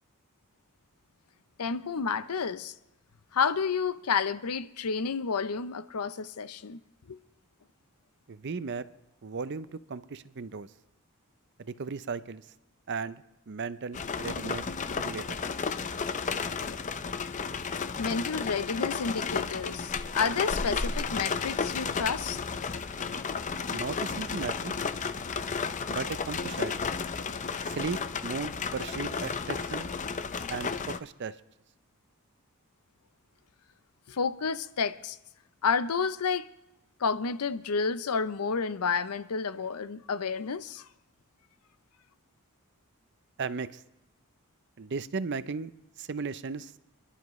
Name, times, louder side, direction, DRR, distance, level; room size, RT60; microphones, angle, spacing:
voice 1, 1.6-2.7 3.3-6.8 7.1-7.2 18.0-22.4 34.1-35.2 35.6-36.5 37.0-40.8, left 5 dB, 85° left, 0.6 m, -30 dB
voice 2, 8.3-8.9 9.2-10.7 11.6-12.5 12.9-14.7 14.9-15.4 23.7-24.7 25.9-26.7 27.7-29.9 30.5-31.4 43.4-43.8 44.8-45.7 46.0-46.7, right 4 dB, 50° right, 0.5 m, -36 dB
sound 1, 13.9-31.0, left 5 dB, 35° left, 0.5 m, -33 dB
27.0 x 11.5 x 3.1 m
head